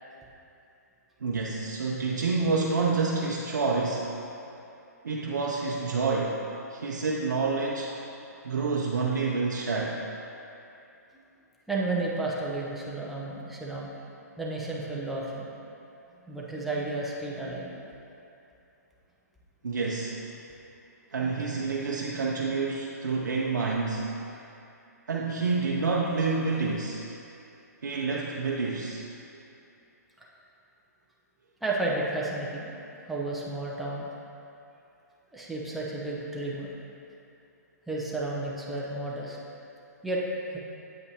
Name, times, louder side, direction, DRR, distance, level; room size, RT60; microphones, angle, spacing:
voice 1, 1.2-4.1 5.0-6.4 6.7-7.9 8.4-10.0 19.6-20.2 21.1-24.1 25.1-27.1 27.8-29.0, right 4 dB, 85° right, -3 dB, 0.6 m, -28 dB
voice 2, 11.7-13.9 14.4-15.5 16.3-17.7 30.2-30.3 31.6-32.7 33.0-34.1 35.3-36.7 37.9-39.4 40.0-40.2 40.5-40.6, right 2 dB, ahead, -5 dB, 0.6 m, -32 dB
8.2 x 5.3 x 2.8 m, 2.7 s
hypercardioid pair, 145°, 9 cm